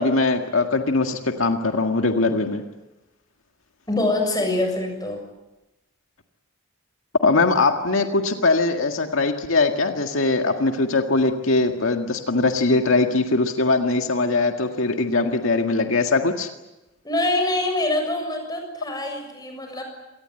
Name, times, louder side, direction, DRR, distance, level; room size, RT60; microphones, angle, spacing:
voice 1, 0.0-2.6 7.2-16.5, left 3 dB, 85° left, 4 dB, 1.9 m, -21 dB
voice 2, 3.9-5.2 17.0-19.8, left 2 dB, 20° left, 3 dB, 7.1 m, -24 dB
27.0 x 19.5 x 9.0 m, 1.0 s
head